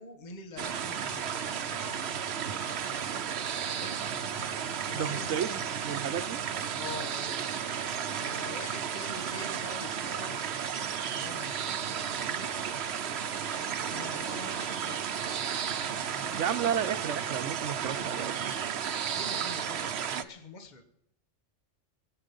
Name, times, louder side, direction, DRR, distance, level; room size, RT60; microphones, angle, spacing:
voice 1, 0.0-1.4 3.7-4.0 4.8-5.5 6.7-7.7 8.1-10.5 11.0-12.6 13.9-15.1 16.0-16.6 19.1-20.8, left 3 dB, 40° left, 7 dB, 1.5 m, -45 dB
sound 1, 0.6-19.5, left 5 dB, 85° left, 1.4 m, -53 dB
sound 2, 0.6-20.2, right 8 dB, 65° right, 1.0 m, -33 dB
voice 2, 4.9-6.4 16.3-18.4, right 8 dB, 85° right, 13 dB, 1.1 m, -32 dB
22.5 x 8.2 x 5.3 m, 0.77 s
omnidirectional pair, 1.2 m